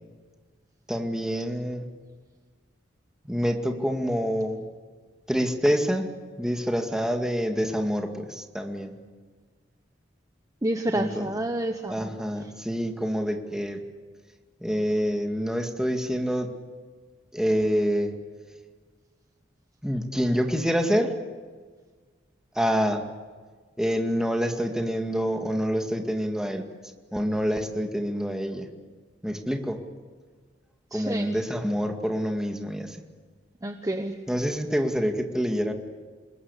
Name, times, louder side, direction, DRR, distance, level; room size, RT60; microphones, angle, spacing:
voice 1, 0.9-1.9 3.3-4.6 5.3-9.0 10.9-11.3 11.9-13.8 14.6-16.5 17.3-18.1 19.8-21.1 22.6-23.0 23.8-26.7 27.1-28.7 29.2-29.8 30.9-33.0 34.3-35.7, equal, 5° right, 4 dB, 2.2 m, -27 dB
voice 2, 10.6-12.3 30.9-31.3 33.6-34.1, right 1 dB, 20° right, 6 dB, 1.1 m, -29 dB
27.5 x 21.0 x 8.4 m, 1.5 s
head